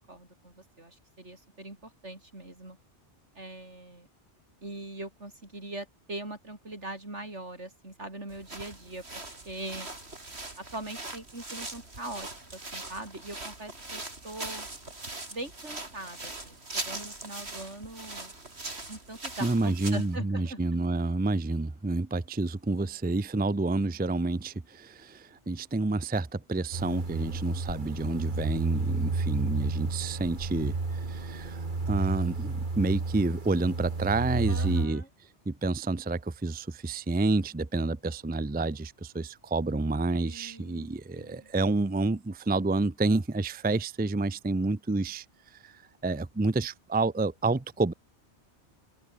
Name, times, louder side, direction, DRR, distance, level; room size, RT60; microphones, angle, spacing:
voice 1, 0.0-2.8 3.3-4.1 4.6-9.9 10.6-14.7 15.3-18.3 18.9-20.6 34.5-35.1 40.3-41.5, right 2 dB, 80° right, 6.4 m, -42 dB
sound 1, 8.3-20.2, right 2 dB, 65° right, 4.4 m, -41 dB
voice 2, 19.4-35.0 35.5-47.9, right 2 dB, 10° right, 0.5 m, -29 dB
sound 2, 26.7-34.9, right 3 dB, 45° right, 2.2 m, -32 dB
omnidirectional pair, 1.2 m